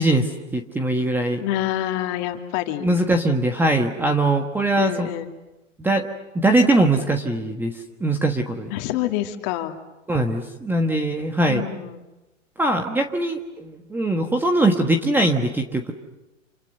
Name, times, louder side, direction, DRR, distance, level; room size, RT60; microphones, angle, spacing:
voice 1, 0.0-1.4 2.8-5.1 5.8-6.1 6.3-8.7 10.1-11.6 12.6-15.9, right 1 dB, 5° right, 4 dB, 1.3 m, -21 dB
voice 2, 1.4-2.9 4.8-5.3 8.7-9.7 11.5-12.1, left 13 dB, 35° left, 5 dB, 2.6 m, -27 dB
30.0 x 28.0 x 6.7 m, 1.0 s
hypercardioid pair, 140°, 38 cm